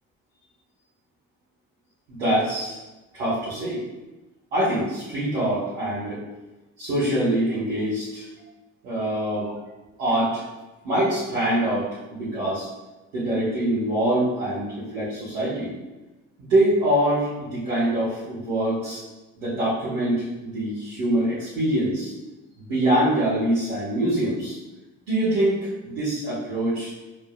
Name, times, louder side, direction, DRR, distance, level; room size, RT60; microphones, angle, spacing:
voice 1, 2.1-2.8 3.1-3.8 4.5-6.2 6.8-8.3 8.8-9.5 10.0-10.4 10.8-12.7 13.1-15.7 16.4-19.0 19.4-22.1 22.6-24.6 25.1-26.9, right 1 dB, 85° right, -13 dB, 1.1 m, -24 dB
5.0 x 3.1 x 2.2 m, 1.1 s
figure-of-eight pair, 45°, 38 cm